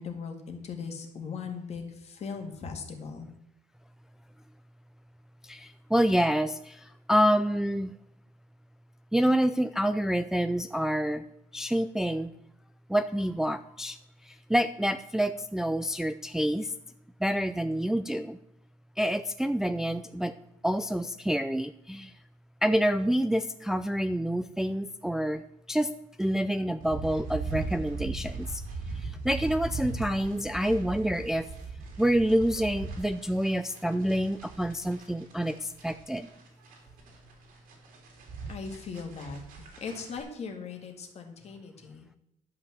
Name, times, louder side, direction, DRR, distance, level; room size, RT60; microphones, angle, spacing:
voice 1, 0.0-3.3 38.5-42.1, left 5 dB, 50° left, 4 dB, 2.1 m, -39 dB
voice 2, 5.4-7.9 9.1-11.2 11.5-12.3 12.9-14.0 14.2-16.7 17.2-18.4 19.0-20.3 20.6-22.1 22.6-25.4 25.7-25.9 26.2-28.6 28.9-31.5 32.0-36.3, equal, 5° right, 10 dB, 0.4 m, -27 dB
sound 1, 26.8-40.2, right 4 dB, 90° right, 3.3 m, -39 dB
11.0 x 5.9 x 7.8 m, 0.83 s
cardioid pair, 135°, 14 cm